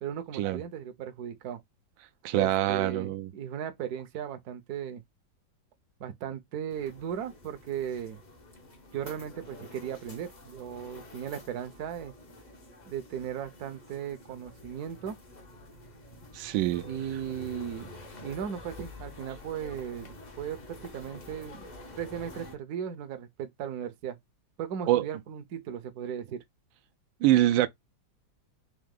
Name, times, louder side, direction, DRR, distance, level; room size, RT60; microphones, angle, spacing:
voice 1, 0.0-1.6 2.3-5.0 6.0-8.2 8.9-12.1 12.9-15.2 16.8-17.9 18.2-21.7 22.0-24.2 24.6-26.4, right 9 dB, 65° right, 1.1 m, -37 dB
voice 2, 2.2-3.3 16.3-16.9 24.9-25.1 27.2-27.7, right 14 dB, 85° right, 1.3 m, -24 dB
sound 1, 6.7-22.6, left 2 dB, 40° left, 0.6 m, -48 dB
3.9 x 2.9 x 3.6 m
omnidirectional pair, 2.0 m